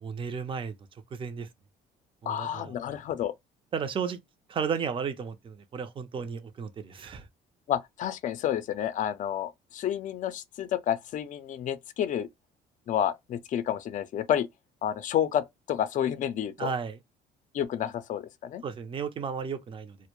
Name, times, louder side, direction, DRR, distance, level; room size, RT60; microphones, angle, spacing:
voice 1, 0.0-0.7 1.1-1.5 2.2-2.7 3.7-4.2 4.5-7.3 16.6-17.0 18.6-20.0, right 6 dB, 30° right, 0.5 m, -33 dB
voice 2, 2.3-3.3 7.7-12.3 12.9-14.5 14.8-16.7 17.5-18.6, left 10 dB, 50° left, 0.5 m, -30 dB
2.1 x 2.1 x 2.9 m
cardioid pair, 110°, 17 cm